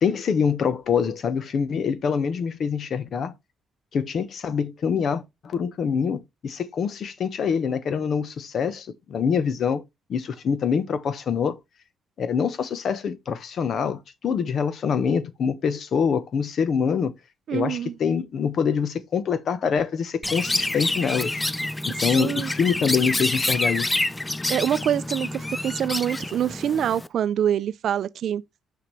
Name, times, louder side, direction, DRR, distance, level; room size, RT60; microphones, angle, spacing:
voice 1, 0.0-3.3 3.9-9.8 10.1-11.6 12.2-17.1 17.5-21.4 21.8-24.0, left 6 dB, 60° left, 0.9 m, -25 dB
voice 2, 17.5-17.9 22.1-22.5 24.5-28.4, right 9 dB, 65° right, 0.4 m, -25 dB
Chirp tweet, 20.2-27.1, left 2 dB, 15° left, 0.4 m, -27 dB
5.9 x 5.8 x 3.1 m
cardioid pair, 90°, 0 cm